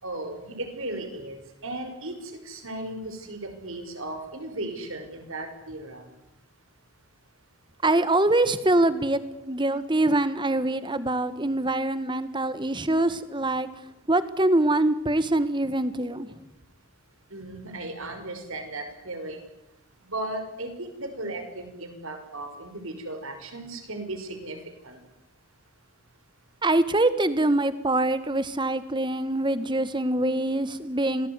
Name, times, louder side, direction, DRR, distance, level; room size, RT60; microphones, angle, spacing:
voice 1, 0.0-6.1 17.3-19.4 20.0-24.6 24.8-25.0, right 2 dB, 65° right, 7 dB, 5.7 m, -36 dB
voice 2, 7.8-13.7 14.1-16.3 26.6-31.3, right 2 dB, 20° right, 13 dB, 1.4 m, -24 dB
26.5 x 19.0 x 9.7 m, 0.86 s
head